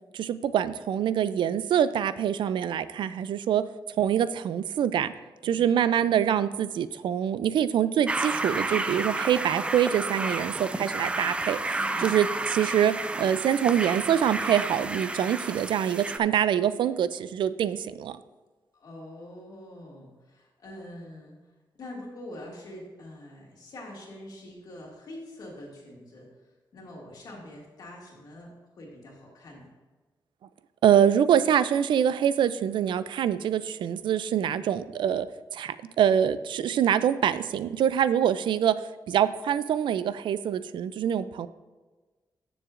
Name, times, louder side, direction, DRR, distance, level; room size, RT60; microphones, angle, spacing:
voice 1, 0.1-3.6 4.0-5.1 5.4-11.6 12.0-18.2 30.8-35.3 35.5-38.7 39.1-41.5, right 9 dB, 85° right, 14 dB, 0.4 m, -25 dB
sound 1, 8.1-16.2, right 2 dB, 15° right, 0.4 m, -31 dB
voice 2, 18.7-21.4 21.7-29.7, left 1 dB, 55° left, -2 dB, 2.2 m, -45 dB
14.0 x 7.0 x 2.5 m, 1.3 s
wide cardioid pair, 175°, 8 cm